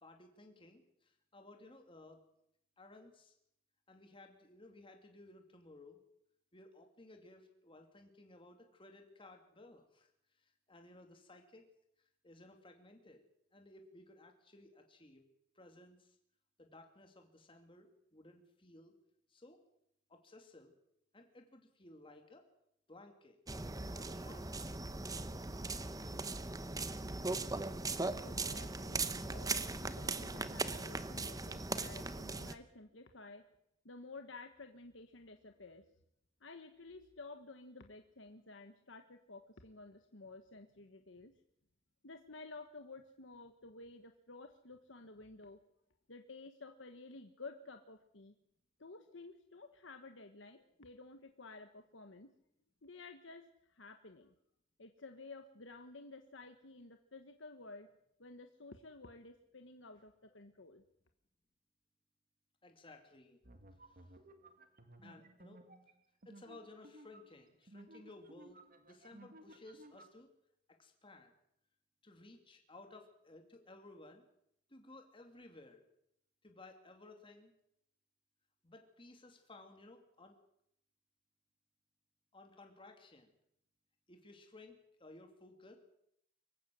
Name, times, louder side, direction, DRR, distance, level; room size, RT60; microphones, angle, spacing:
voice 1, 0.0-2.2 2.8-3.3 3.9-6.0 6.5-10.1 10.4-11.7 12.2-13.2 13.5-15.2 15.5-16.2 16.6-18.9 19.3-19.6 20.1-20.7 21.1-22.4 22.9-23.4 23.9-24.5 62.6-63.4 63.9-64.1 65.0-65.6 66.3-70.3 70.8-71.3 72.0-74.2 74.7-75.8 76.4-77.5 78.6-80.4 82.3-83.3 84.1-85.8, left 2 dB, 25° left, 4 dB, 2.7 m, -58 dB
sound 1, 23.5-32.5, right 3 dB, 20° right, 1.0 m, -39 dB
voice 2, 28.2-33.4 33.8-35.8 36.4-41.3 42.0-45.6 46.1-48.3 48.8-52.3 52.8-54.3 54.8-57.9 58.2-60.8, left 3 dB, 75° left, 6 dB, 1.4 m, -53 dB
sound 2, 63.4-70.1, right 1 dB, 45° right, 1.8 m, -58 dB
24.5 x 15.5 x 7.7 m, 0.77 s
head